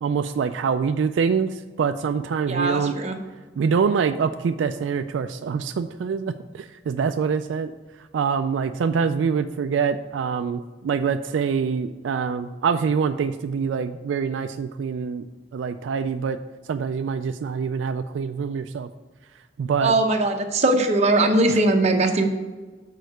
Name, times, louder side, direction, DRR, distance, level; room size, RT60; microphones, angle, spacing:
voice 1, 0.0-2.9 3.6-7.7 8.1-15.3 15.5-16.4 16.7-18.9 19.6-19.9 21.5-21.6, right 6 dB, 80° right, 9 dB, 0.3 m, -25 dB
voice 2, 2.5-3.1 19.8-22.2, right 2 dB, 35° right, 3 dB, 0.8 m, -20 dB
6.4 x 4.6 x 6.5 m, 1.3 s
head